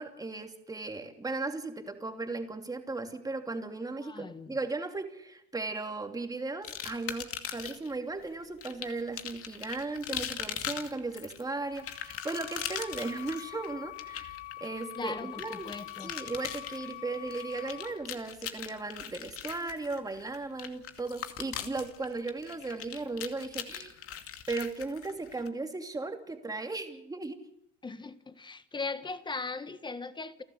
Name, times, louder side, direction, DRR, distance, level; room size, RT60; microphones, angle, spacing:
voice 1, 0.0-15.7 16.0-24.0 24.5-27.4, right 3 dB, 10° right, 5 dB, 2.9 m, -36 dB
voice 2, 4.0-4.6 14.9-16.1 27.8-30.4, left 4 dB, 15° left, 12 dB, 1.6 m, -39 dB
sound 1, 6.6-7.9 8.6-25.5, left 9 dB, 45° left, 2.5 m, -40 dB
sound 2, 11.4-17.9, left 17 dB, 80° left, 7.3 m, -45 dB
30.0 x 12.0 x 8.0 m, 0.77 s
supercardioid pair, 125°, 32 cm